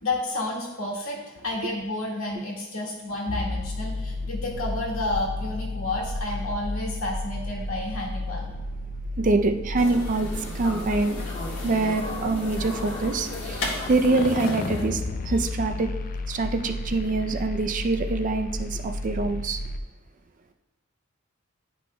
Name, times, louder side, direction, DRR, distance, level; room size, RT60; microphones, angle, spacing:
voice 1, 0.0-8.5, left 2 dB, 85° left, 1.8 m, -31 dB
sound 1, 3.3-19.8, left 2 dB, 40° left, 0.3 m, -33 dB
voice 2, 9.2-11.2 11.6-15.9 16.3-19.6, right 3 dB, 40° right, 0.4 m, -25 dB
sound 2, 9.8-14.8, left 2 dB, 65° left, 1.5 m, -34 dB
10.5 x 5.3 x 2.2 m
head